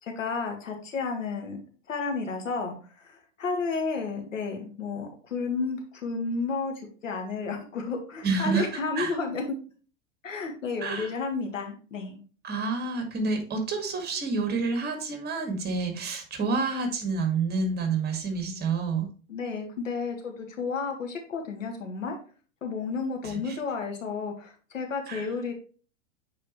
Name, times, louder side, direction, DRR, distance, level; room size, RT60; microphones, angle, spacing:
voice 1, 0.0-1.6 1.9-9.6 10.2-12.2 19.3-22.2 22.6-25.5, left 4 dB, 85° left, 3 dB, 1.7 m, -32 dB
voice 2, 8.2-8.7 9.0-9.2 10.8-11.1 12.4-19.1 23.2-23.6 25.1-25.3, right 4 dB, 25° right, 5 dB, 1.8 m, -28 dB
8.7 x 4.1 x 3.1 m, 0.38 s
hypercardioid pair, 100°, 38 cm